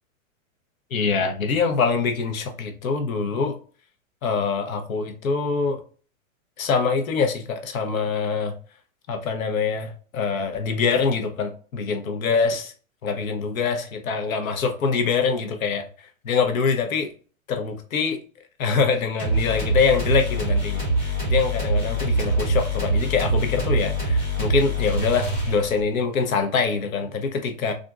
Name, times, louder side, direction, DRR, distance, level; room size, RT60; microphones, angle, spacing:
voice 1, 0.9-3.5 4.2-5.8 6.6-8.5 9.1-12.7 13.0-15.9 16.2-17.1 17.5-18.2 18.6-27.7, left 5 dB, 75° left, 0.9 m, -24 dB
sound 1, 19.2-25.9, right 1 dB, 10° left, 0.9 m, -24 dB
3.6 x 2.6 x 2.3 m
supercardioid pair, 175°, 41 cm